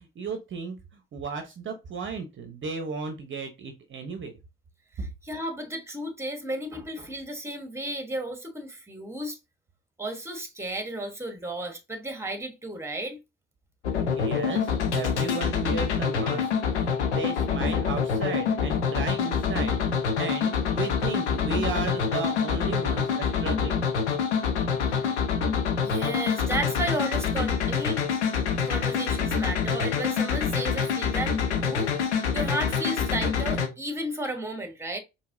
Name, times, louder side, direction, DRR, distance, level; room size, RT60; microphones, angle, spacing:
voice 1, 0.0-4.3 5.0-5.1 14.1-23.8, right 4 dB, 35° right, 0.8 m, -34 dB
voice 2, 5.0-9.4 10.0-13.2 24.9-25.1 25.8-28.0 28.7-35.0, right 1 dB, 10° right, 1.1 m, -33 dB
sound 1, 13.8-33.7, left 6 dB, 85° left, 0.7 m, -26 dB
4.7 x 2.9 x 2.6 m
figure-of-eight pair, 50°, 34 cm